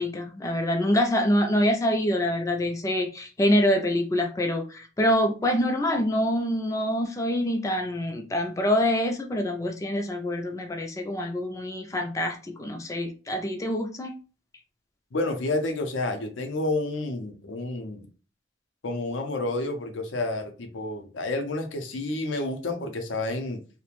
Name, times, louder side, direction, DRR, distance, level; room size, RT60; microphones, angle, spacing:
voice 1, 0.0-14.2, left 1 dB, 15° left, 4 dB, 0.3 m, -25 dB
voice 2, 15.1-18.1 18.8-23.6, left 2 dB, 80° left, 6 dB, 0.5 m, -30 dB
2.4 x 2.1 x 3.0 m, 0.36 s
head